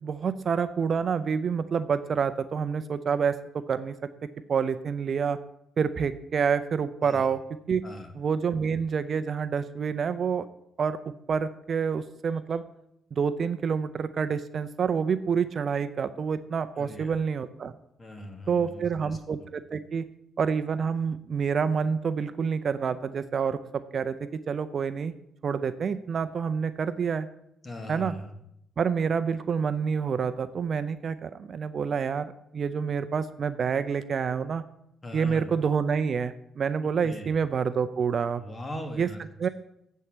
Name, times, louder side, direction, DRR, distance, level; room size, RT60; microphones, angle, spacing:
voice 1, 0.0-3.4 3.7-3.9 4.5-5.4 5.8-7.4 7.7-7.8 8.1-10.5 10.8-11.0 11.3-12.6 13.1-17.7 18.5-20.1 20.4-25.1 25.4-27.3 27.9-28.1 28.8-34.6 35.1-38.4 39.0-39.1 39.4-39.5, right 6 dB, 50° right, 12 dB, 0.5 m, -28 dB
voice 2, 16.8-17.2 18.0-19.2 27.6-28.3 35.0-35.5 37.0-37.3 38.4-39.2, left 1 dB, 25° left, 4 dB, 1.7 m, -40 dB
8.3 x 4.5 x 7.2 m, 0.77 s
cardioid pair, 90°, 0 cm